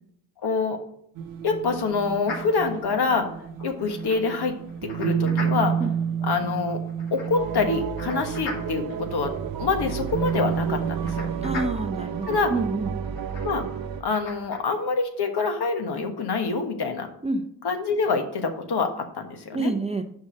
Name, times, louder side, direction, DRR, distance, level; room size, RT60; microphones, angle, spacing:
voice 1, 0.4-0.8 1.4-3.3 3.6-4.5 4.8-5.8 6.2-6.8 7.1-9.3 9.6-11.3 12.3-12.5 13.4-13.6 14.0-17.1 17.6-19.7, left 4 dB, 50° left, 5 dB, 1.4 m, -26 dB
sound 1, 1.1-11.6, right 7 dB, 80° right, 0.8 m, -31 dB
sound 2, 2.2-14.6, left 3 dB, 75° left, 2.4 m, -42 dB
sound 3, 7.4-14.0, right 7 dB, 50° right, 0.8 m, -32 dB
voice 2, 11.4-12.9 17.2-17.4 19.5-20.0, right 2 dB, 15° right, 6 dB, 0.7 m, -27 dB
5.5 x 5.1 x 6.3 m, 0.69 s
supercardioid pair, 55°, 48 cm